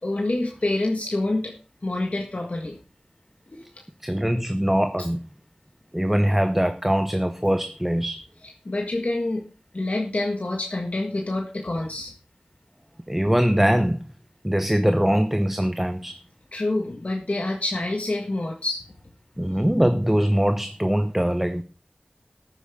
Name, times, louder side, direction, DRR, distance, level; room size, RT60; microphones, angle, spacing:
voice 1, 0.0-1.5 1.8-2.8 8.6-9.5 9.7-12.1 16.5-18.8 19.5-19.6, left 2 dB, 60° left, 1 dB, 1.7 m, -27 dB
voice 2, 4.0-5.2 5.9-8.2 13.1-14.0 14.4-16.2 19.4-21.6, equal, 10° right, 9 dB, 0.8 m, -22 dB
13.0 x 9.8 x 3.7 m, 0.34 s
wide cardioid pair, 45°, 3 cm